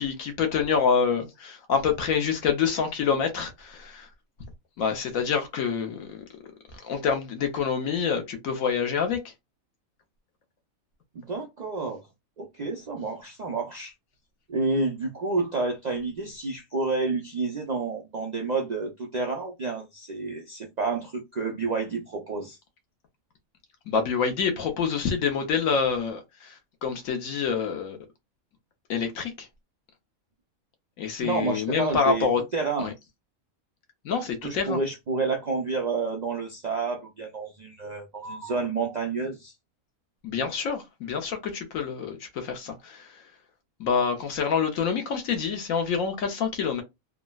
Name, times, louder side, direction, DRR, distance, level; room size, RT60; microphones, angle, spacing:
voice 1, 0.0-4.1 4.8-6.2 6.8-9.2 23.9-26.5 26.8-28.0 28.9-29.5 31.0-32.4 32.8-32.9 34.0-34.8 40.2-43.1 43.8-46.8, left 6 dB, 70° left, 1.2 m, -27 dB
voice 2, 11.1-12.1 12.4-13.9 14.5-22.6 31.2-32.9 34.4-39.5, right 3 dB, 75° right, 0.4 m, -29 dB
3.6 x 2.0 x 2.2 m
omnidirectional pair, 1.5 m